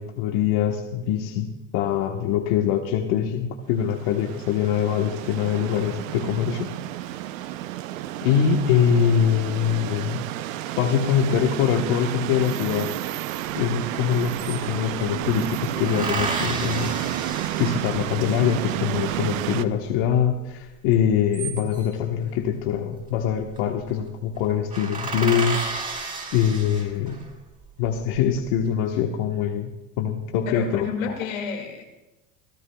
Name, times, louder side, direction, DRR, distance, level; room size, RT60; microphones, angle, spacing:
voice 1, 0.0-6.7 8.2-10.2 10.8-12.9 13.5-16.9 17.2-25.7 26.3-27.2 27.8-29.7 30.0-31.2, left 8 dB, 70° left, 2 dB, 1.2 m, -23 dB
sound 1, 3.8-19.6, right 13 dB, 85° right, 0.7 m, -31 dB
sound 2, 13.7-13.8 14.1-15.1 15.9-18.4 21.0-22.0 23.2-23.6 23.9-24.0 24.3-24.4 24.7-27.3 27.8-28.5, right 4 dB, 20° right, 4.6 m, -32 dB
voice 2, 30.5-31.8, left 6 dB, 90° left, 3 dB, 2.3 m, -30 dB
26.5 x 12.5 x 2.3 m, 1.0 s
supercardioid pair, 105°, 39 cm